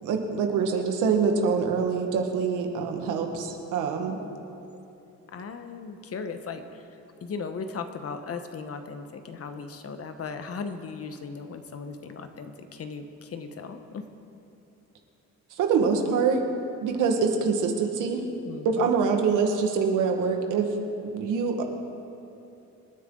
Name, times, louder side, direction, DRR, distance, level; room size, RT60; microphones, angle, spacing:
voice 1, 0.0-4.2 15.6-16.4 16.8-18.2 18.6-20.7 21.1-21.5, right 5 dB, 85° right, 3 dB, 1.7 m, -25 dB
voice 2, 3.7-4.4 5.3-6.9 7.2-14.0 18.4-18.9, left 5 dB, 50° left, 8 dB, 1.2 m, -37 dB
26.5 x 9.9 x 3.9 m, 2.9 s
cardioid pair, 90°, 30 cm